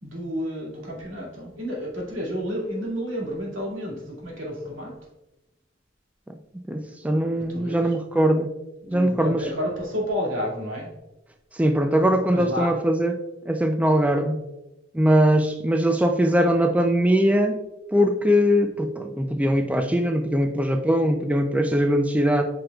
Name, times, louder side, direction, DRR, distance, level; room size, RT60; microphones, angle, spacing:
voice 1, 0.0-5.0 7.5-7.9 8.8-10.9 12.3-12.8, equal, 85° right, -3 dB, 2.4 m, -30 dB
voice 2, 6.7-8.5 8.9-9.5 11.5-13.1 13.5-14.4 14.9-17.6 17.9-22.4, equal, 5° right, 5 dB, 0.3 m, -21 dB
8.8 x 5.2 x 2.3 m, 0.96 s
head